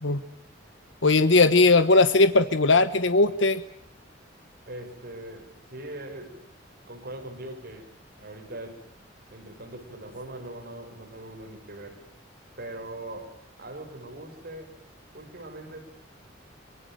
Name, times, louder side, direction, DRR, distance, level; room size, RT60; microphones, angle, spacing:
voice 1, 1.0-3.6, left 3 dB, 75° left, 12 dB, 1.3 m, -19 dB
voice 2, 4.7-6.5 6.9-7.9 8.2-8.8 9.3-12.0 12.6-14.7 15.1-15.8, right 1 dB, 55° right, 3 dB, 6.3 m, -41 dB
25.0 x 23.0 x 9.2 m, 0.67 s
head